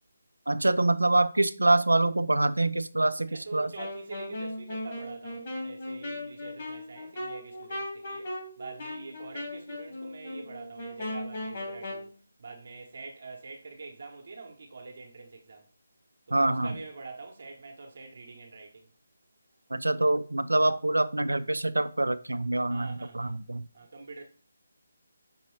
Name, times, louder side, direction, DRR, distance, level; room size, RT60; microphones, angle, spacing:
voice 1, 0.5-3.7 16.3-16.8 19.7-23.6, right 2 dB, 85° right, 0.3 m, -25 dB
voice 2, 3.2-12.1 12.4-15.6 16.3-18.9 22.7-23.4 23.7-24.2, right 3 dB, 55° right, 0.9 m, -45 dB
Wind instrument woodwind instrument, 3.7-12.1, left 1 dB, 40° left, 1.8 m, -38 dB
5.4 x 3.0 x 3.1 m
figure-of-eight pair, 155°, 0 cm